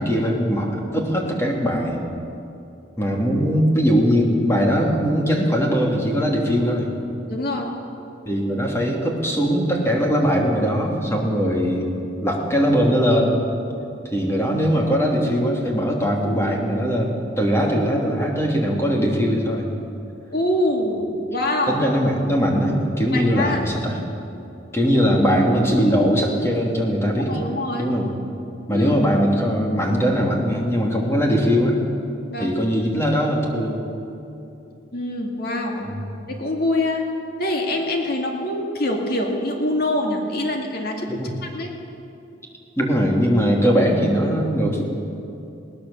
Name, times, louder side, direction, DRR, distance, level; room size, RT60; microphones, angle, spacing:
voice 1, 0.0-2.0 3.0-6.9 8.3-13.4 14.1-19.7 21.7-24.0 24.7-27.3 27.8-28.1 28.7-31.8 32.4-33.8 35.7-36.0 41.1-41.3 42.8-44.8, equal, 15° left, -1 dB, 2.9 m, -20 dB
voice 2, 7.3-7.7 20.3-21.8 23.1-23.6 27.3-27.9 28.7-28.9 32.3-32.5 34.9-35.8 36.3-37.0 37.4-41.7, left 1 dB, 55° left, 1 dB, 2.3 m, -24 dB
20.5 x 18.0 x 7.1 m, 2.8 s
head